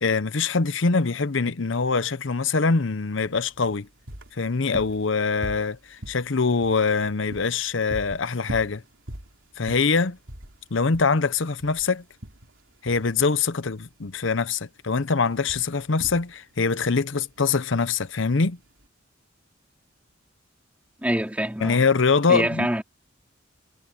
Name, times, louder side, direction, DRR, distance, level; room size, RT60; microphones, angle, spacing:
voice 1, 0.0-3.9 4.4-8.8 9.6-10.2 10.7-12.0 12.8-18.6 21.6-22.7, left 4 dB, 65° left, 0.8 m, -23 dB
sound 1, 3.2-18.9, right 1 dB, 70° right, 3.1 m, -43 dB
voice 2, 21.0-21.8 22.3-22.8, right 1 dB, 5° right, 2.9 m, -25 dB
head